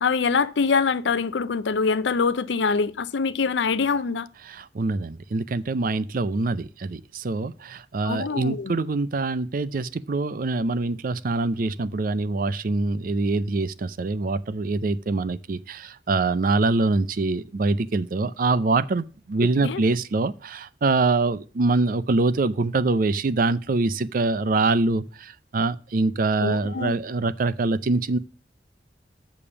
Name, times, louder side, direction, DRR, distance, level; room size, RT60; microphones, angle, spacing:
voice 1, 0.0-4.3 8.0-8.7 19.6-19.8 26.4-27.0, left 5 dB, 90° left, 0.5 m, -24 dB
voice 2, 4.5-28.2, right 3 dB, 50° right, 0.5 m, -24 dB
7.0 x 5.2 x 6.8 m
head